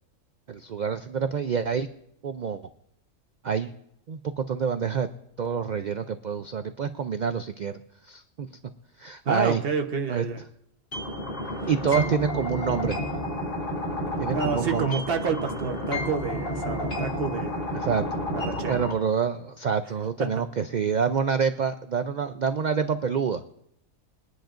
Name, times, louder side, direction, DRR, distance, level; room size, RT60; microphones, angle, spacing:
voice 1, 0.5-1.9 2.2-2.6 3.4-3.7 4.1-5.1 5.4-8.5 9.0-9.6 10.1-10.2 11.7-13.0 14.2-14.9 17.7-18.0 18.6-23.4, right 6 dB, 70° right, 9 dB, 0.4 m, -27 dB
voice 2, 9.2-10.4 11.9-12.0 14.3-17.6 18.3-18.7 20.2-20.3, right 5 dB, 50° right, 5 dB, 1.2 m, -29 dB
sound 1, 10.9-18.9, left 1 dB, 40° left, 2.8 m, -31 dB
23.0 x 10.5 x 2.5 m, 0.77 s
omnidirectional pair, 1.4 m